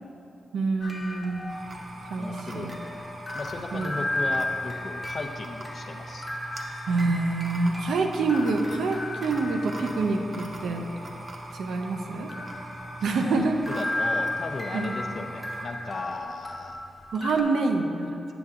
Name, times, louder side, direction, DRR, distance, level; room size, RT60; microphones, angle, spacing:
voice 1, 0.5-1.4 2.1-2.7 3.7-3.9 6.9-10.9 11.5-12.3 13.0-13.6 14.7-14.9 17.1-18.2, right 3 dB, 90° right, 4 dB, 0.5 m, -26 dB
sound 1, 0.8-17.4, left 2 dB, 10° left, 0.7 m, -35 dB
sound 2, 1.5-15.7, right 1 dB, 50° right, 0.8 m, -41 dB
voice 2, 2.2-2.7 3.3-6.3 13.2-16.8 17.4-17.7, left 3 dB, 55° left, 5 dB, 0.5 m, -36 dB
9.5 x 6.9 x 2.5 m, 2.7 s
cardioid pair, 70°, 0 cm